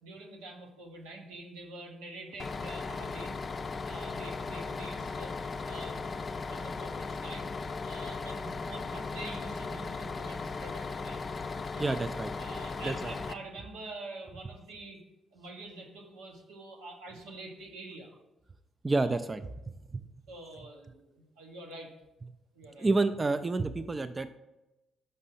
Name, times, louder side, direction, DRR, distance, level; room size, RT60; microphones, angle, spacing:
voice 1, 0.0-3.3 3.9-5.3 5.7-7.5 7.8-11.3 11.7-12.0 12.4-15.0 15.3-18.1 19.0-19.2 20.3-21.9 22.5-22.9, right 2 dB, 90° right, 0 dB, 1.0 m, -46 dB
Bus, 2.4-13.3, left 4 dB, 45° left, 0.4 m, -37 dB
voice 2, 11.8-12.3 12.8-13.1 18.8-19.5 19.9-20.0 22.8-24.3, right 3 dB, 30° right, 10 dB, 0.4 m, -29 dB
5.3 x 5.2 x 4.2 m, 0.96 s
hypercardioid pair, 50°, 0 cm